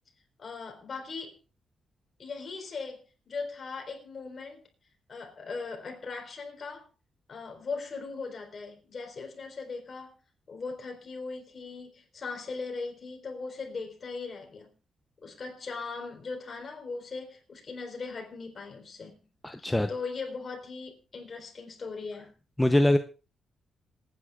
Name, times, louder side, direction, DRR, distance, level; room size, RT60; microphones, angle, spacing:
voice 1, 0.4-1.4 2.2-4.6 5.1-6.9 7.3-10.1 10.5-14.7 15.2-19.2 19.6-22.3, left 4 dB, 45° left, 4.1 m, -39 dB
voice 2, 19.4-19.9 22.6-23.0, left 1 dB, 10° left, 0.7 m, -22 dB
26.5 x 9.7 x 2.4 m
cardioid pair, 105°, 0 cm